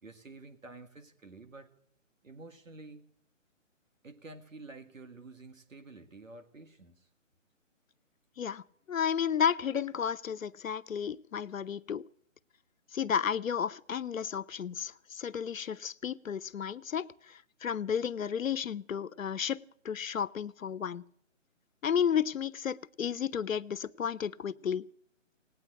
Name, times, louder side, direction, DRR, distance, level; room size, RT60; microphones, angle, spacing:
voice 1, 0.0-1.7 2.2-3.1 4.0-7.1, right 3 dB, 85° right, 8 dB, 1.9 m, -50 dB
voice 2, 8.4-12.0 12.9-21.0 21.8-24.8, left 8 dB, 85° left, 17 dB, 0.7 m, -32 dB
18.5 x 9.3 x 7.8 m, 0.70 s
figure-of-eight pair, 155°, 39 cm